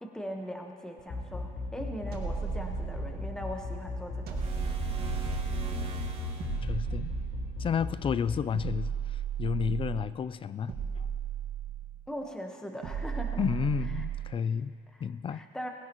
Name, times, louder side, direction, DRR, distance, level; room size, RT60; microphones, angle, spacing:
voice 1, 0.0-4.4 12.1-13.4 14.0-14.1 14.9-15.0 15.3-15.7, equal, 5° left, 2 dB, 1.2 m, -40 dB
sound 1, 1.0-8.4, left 4 dB, 55° left, 3.2 m, -36 dB
sound 2, 2.1-3.4 4.3-5.9 6.4-7.8 8.5-10.2 10.7-12.1 12.8-14.4, right 9 dB, 70° right, 1.9 m, -35 dB
sound 3, 4.3-6.7, right 4 dB, 35° right, 3.0 m, -38 dB
voice 2, 6.6-7.1 7.6-11.1 13.4-14.7 15.0-15.4, left 7 dB, 30° left, 16 dB, 0.4 m, -31 dB
20.5 x 16.0 x 3.1 m, 2.4 s
cardioid pair, 110°, 17 cm